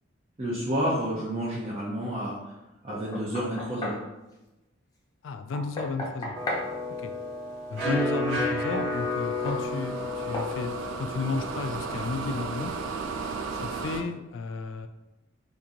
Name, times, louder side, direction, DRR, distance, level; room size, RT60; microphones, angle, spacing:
voice 1, 0.4-2.4 2.8-3.9, equal, 30° right, -7 dB, 0.6 m, -30 dB
Knock, 2.9-4.1 5.5-6.7 8.7-8.9 9.5-9.7 10.3-10.6, left 1 dB, 20° left, 0.6 m, -34 dB
voice 2, 5.2-6.4 7.0-7.1 7.7-12.7 13.5-14.9, left 4 dB, 70° left, 8 dB, 0.3 m, -33 dB
sound 1, 6.3-13.7, left 2 dB, 60° right, 1.3 m, -32 dB
sound 2, 8.9-14.0, right 4 dB, 80° right, 0.4 m, -35 dB
2.9 x 2.5 x 3.7 m, 0.99 s
head